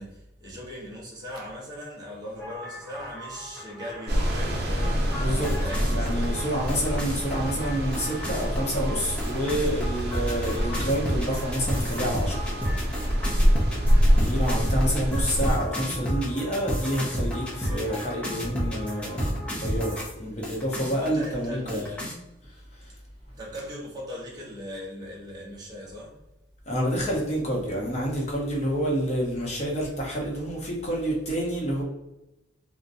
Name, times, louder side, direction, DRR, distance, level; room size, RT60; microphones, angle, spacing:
voice 1, 0.0-6.2 13.3-13.6 20.2-20.6 20.9-22.1 23.3-26.2, left 1 dB, 20° right, -4 dB, 0.9 m, -39 dB
sound 1, 2.4-20.1 20.4-21.2 21.7-22.1, equal, 5° left, 0.6 m, -33 dB
sound 2, 4.1-15.5, equal, 55° right, 0.6 m, -26 dB
voice 2, 5.9-12.9 14.2-21.8 22.5-23.0 26.7-31.8, equal, 35° left, -2 dB, 0.8 m, -28 dB
4.0 x 2.1 x 2.6 m, 0.95 s
head